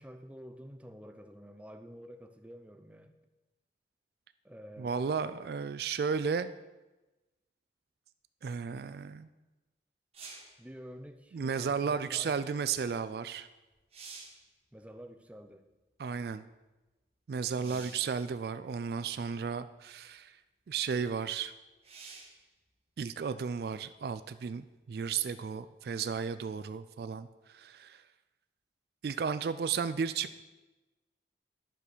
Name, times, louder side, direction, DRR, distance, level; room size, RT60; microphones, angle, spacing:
voice 1, 0.0-3.2 4.4-5.2 10.6-12.5 14.7-15.7 17.5-18.1, equal, 5° right, 6 dB, 0.5 m, -49 dB
voice 2, 4.8-6.5 8.4-9.3 11.3-13.5 16.0-16.4 17.3-20.3 20.7-21.5 23.0-28.0 29.0-30.4, right 6 dB, 60° right, 13 dB, 0.3 m, -34 dB
sound 1, 10.1-10.6 13.2-13.3 13.7-14.5 17.6-18.1 19.1-19.2 21.8-22.4 26.0-26.1, right 4 dB, 35° right, 1.6 m, -48 dB
10.5 x 5.6 x 6.1 m, 1.1 s
head